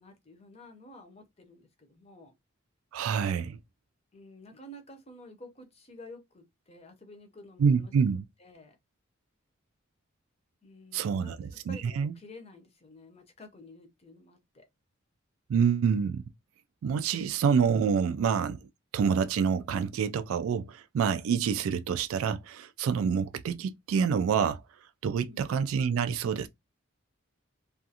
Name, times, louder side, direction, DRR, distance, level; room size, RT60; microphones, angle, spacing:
voice 1, 0.0-2.3 4.1-7.9 8.4-8.8 10.6-14.7 25.2-25.6, left 1 dB, 30° left, 0.6 m, -51 dB
voice 2, 2.9-3.6 7.6-8.2 10.9-12.1 15.5-16.2 16.8-18.6 18.9-24.6 25.0-26.5, right 6 dB, 90° right, 0.3 m, -27 dB
2.4 x 2.4 x 2.7 m
head